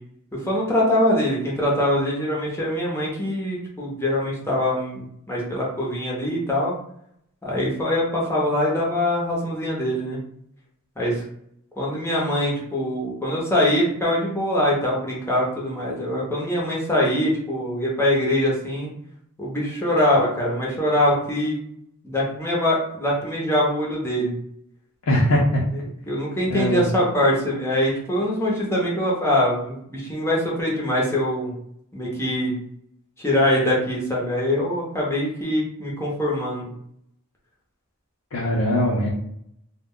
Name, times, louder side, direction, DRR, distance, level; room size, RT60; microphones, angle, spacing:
voice 1, 0.3-6.7 7.4-10.2 11.0-11.2 11.8-18.9 19.4-21.6 22.0-24.3 26.1-31.5 31.9-32.5 33.2-36.6, left 1 dB, 10° left, -5 dB, 0.7 m, -23 dB
voice 2, 25.1-25.6 26.5-26.9 38.3-39.1, left 1 dB, 75° left, -4 dB, 0.6 m, -21 dB
2.3 x 2.1 x 3.6 m, 0.72 s
head